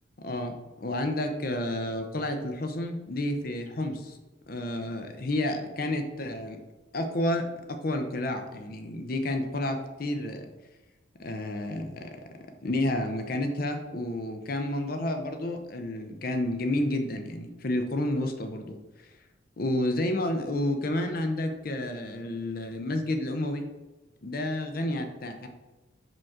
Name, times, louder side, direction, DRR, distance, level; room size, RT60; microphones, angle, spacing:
voice 1, 0.2-0.5 0.8-4.2 4.5-6.6 6.9-10.5 11.2-12.2 12.6-19.1 19.6-23.7 24.2-25.5, left 1 dB, 50° left, 6 dB, 0.6 m, -30 dB
6.1 x 5.1 x 3.6 m, 1.1 s
head